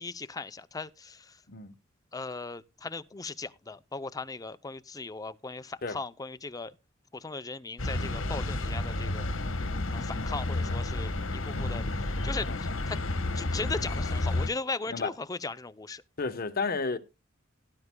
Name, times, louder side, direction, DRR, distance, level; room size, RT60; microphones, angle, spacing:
voice 1, 0.0-1.4 2.1-6.7 7.1-9.3 9.9-13.0 13.4-16.0, left 3 dB, 20° left, 0.5 m, -38 dB
sound 1, 7.8-14.5, left 2 dB, 75° left, 1.2 m, -31 dB
voice 2, 16.2-17.0, left 4 dB, 50° left, 1.0 m, -31 dB
17.5 x 11.0 x 2.2 m
head